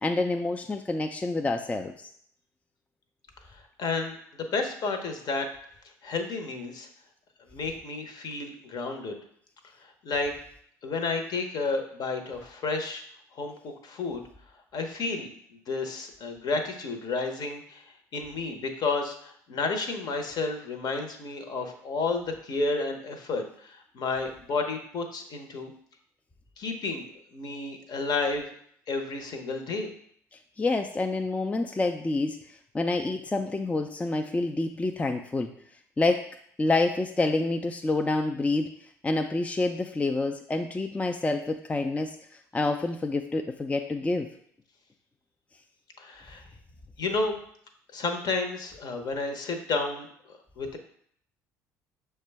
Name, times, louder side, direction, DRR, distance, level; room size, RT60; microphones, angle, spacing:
voice 1, 0.0-2.1 30.6-35.5 36.0-36.3 36.6-38.7 39.0-42.1 42.5-44.3, left 2 dB, 15° left, 4 dB, 0.4 m, -27 dB
voice 2, 3.8-4.2 4.5-5.5 6.0-6.9 7.5-9.2 10.0-10.3 10.8-13.0 13.4-14.2 14.7-15.3 15.7-17.8 18.1-25.7 26.6-27.1 27.3-28.4 28.9-29.9 46.0-46.4 47.0-47.4 47.9-50.1 50.6-50.8, left 3 dB, 50° left, 5 dB, 0.8 m, -31 dB
6.3 x 2.2 x 3.4 m, 0.64 s
hypercardioid pair, 60°, 9 cm